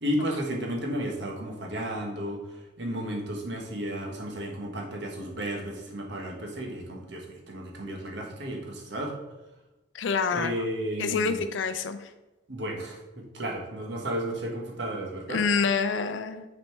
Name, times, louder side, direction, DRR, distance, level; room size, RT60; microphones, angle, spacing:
voice 1, 0.0-2.4 2.8-9.1 10.3-11.4 12.5-15.4, equal, 65° right, 0 dB, 1.3 m, -33 dB
voice 2, 9.9-10.5 11.0-12.1 15.3-16.5, left 5 dB, 75° left, 10 dB, 0.4 m, -27 dB
5.9 x 4.3 x 4.5 m, 1.1 s
head